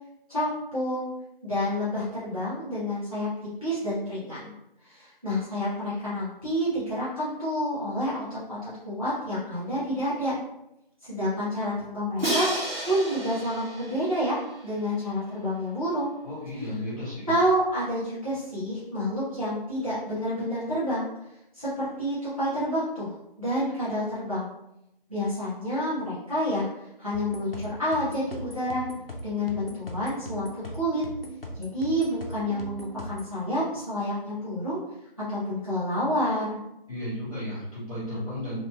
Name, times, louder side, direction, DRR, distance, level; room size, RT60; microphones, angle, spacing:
voice 1, 0.3-1.1 1.4-4.4 4.8-8.6 8.9-10.3 11.0-16.1 17.3-21.1 21.5-24.5 25.1-26.7 27.0-28.8 29.2-31.0 31.6-34.8 35.3-36.6, equal, 35° right, -12 dB, 0.9 m, -29 dB
Crash cymbal, 12.2-15.1, right 1 dB, 75° right, 1.2 m, -32 dB
voice 2, 16.2-17.3 36.9-38.6, left 1 dB, 35° left, -11 dB, 1.5 m, -34 dB
sound 1, 27.1-33.3, equal, 70° left, 0.7 m, -39 dB
2.9 x 2.9 x 2.2 m, 0.83 s
figure-of-eight pair, 180°, 29 cm